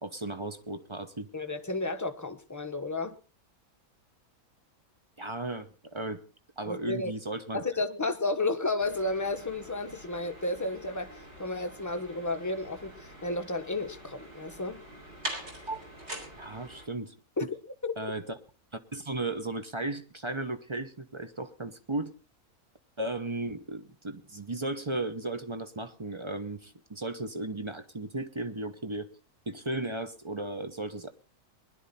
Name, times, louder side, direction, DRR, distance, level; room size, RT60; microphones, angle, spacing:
voice 1, 0.0-1.3 5.2-6.2 6.6-7.6 15.7-15.8 16.3-17.1 17.4-17.5 18.0-18.3 18.9-22.1 23.0-29.1 29.5-31.1, right 2 dB, 25° right, 0.7 m, -35 dB
voice 2, 1.3-3.1 6.7-7.1 7.5-14.8 17.4-17.5 17.8-18.0, left 2 dB, 15° left, 0.8 m, -32 dB
sound 1, 8.8-16.9, right 1 dB, 45° right, 4.4 m, -44 dB
20.5 x 11.0 x 4.1 m
omnidirectional pair, 1.6 m